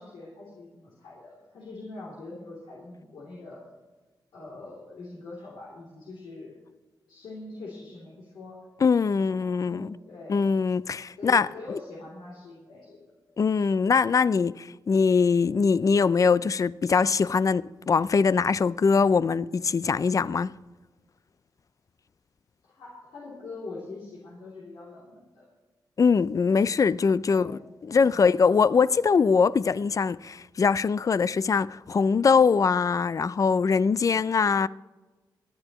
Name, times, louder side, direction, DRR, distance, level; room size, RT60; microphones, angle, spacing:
voice 1, 0.0-3.6 4.3-6.6 7.1-8.7 9.3-10.4 11.2-13.4 22.6-25.5 27.2-28.3, left 3 dB, 90° left, 2.9 m, -43 dB
voice 2, 8.8-9.9 10.3-11.8 13.4-20.5 26.0-34.7, left 5 dB, 45° left, 0.4 m, -22 dB
24.5 x 9.8 x 3.0 m
cardioid pair, 75°, 8 cm